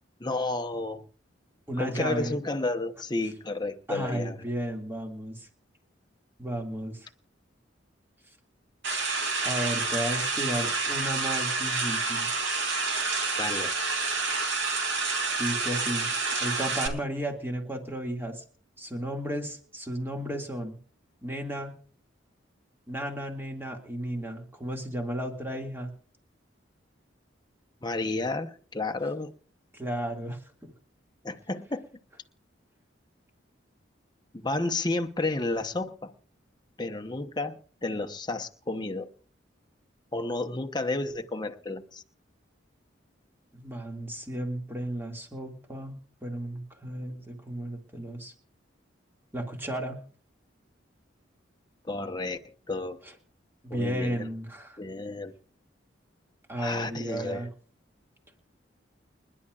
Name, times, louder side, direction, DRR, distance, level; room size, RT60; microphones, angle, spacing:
voice 1, 0.2-1.0 1.8-4.5 13.4-13.8 27.8-29.3 31.2-31.9 34.3-36.1 36.8-39.1 40.1-42.0 51.8-53.0 53.7-54.3 54.8-55.3 56.6-57.5, left 2 dB, 20° left, 1.0 m, -31 dB
voice 2, 1.7-2.4 3.9-5.5 6.4-7.1 9.4-12.3 15.4-16.1 16.4-18.4 18.8-20.8 21.2-21.8 22.9-25.9 29.7-30.7 43.5-48.3 49.3-50.0 53.6-54.8 56.5-57.5, right 1 dB, 10° right, 2.3 m, -34 dB
sound 1, 8.8-16.9, right 4 dB, 75° right, 2.9 m, -28 dB
29.5 x 11.0 x 2.5 m
head